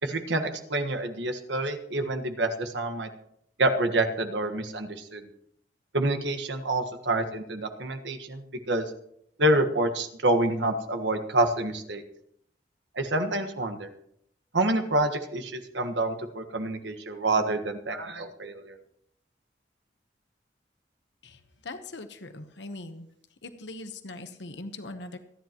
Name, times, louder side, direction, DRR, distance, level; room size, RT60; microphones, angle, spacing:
voice 1, 0.0-3.1 3.6-5.3 5.9-8.8 9.4-12.0 12.9-13.9 14.5-18.8, right 2 dB, 85° right, 7 dB, 1.5 m, -27 dB
voice 2, 21.2-23.1 23.4-25.2, left 2 dB, 80° left, 8 dB, 1.0 m, -41 dB
26.5 x 10.5 x 3.0 m, 0.73 s
head